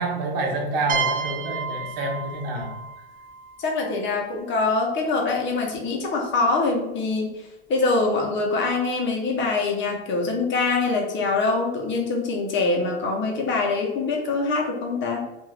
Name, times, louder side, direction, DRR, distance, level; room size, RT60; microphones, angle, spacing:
voice 1, 0.0-2.8, right 2 dB, 80° right, 2 dB, 0.8 m, -27 dB
sound 1, 0.9-4.5, right 5 dB, 30° right, 0.5 m, -31 dB
voice 2, 3.6-7.3 7.7-15.2, left 3 dB, 40° left, 0 dB, 0.8 m, -24 dB
2.5 x 2.3 x 3.2 m, 1.0 s
supercardioid pair, 100°, 29 cm